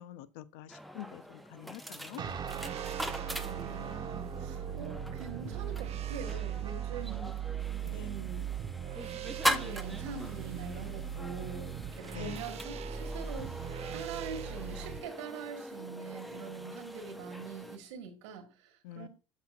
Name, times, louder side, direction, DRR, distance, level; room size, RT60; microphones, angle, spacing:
voice 1, 0.0-2.2 7.8-8.1 12.1-12.4 18.8-19.1, left 13 dB, 75° left, 0.5 m, -46 dB
sound 1, 0.7-17.8, equal, ahead, 0.6 m, -41 dB
sound 2, 2.2-7.3, right 7 dB, 30° right, 1.1 m, -44 dB
sound 3, 2.2-15.0, right 8 dB, 45° right, 0.6 m, -39 dB
voice 2, 3.3-7.4 7.9-8.5 9.2-19.1, right 6 dB, 85° right, 1.6 m, -44 dB
8.2 x 6.0 x 2.4 m
supercardioid pair, 85°, 15 cm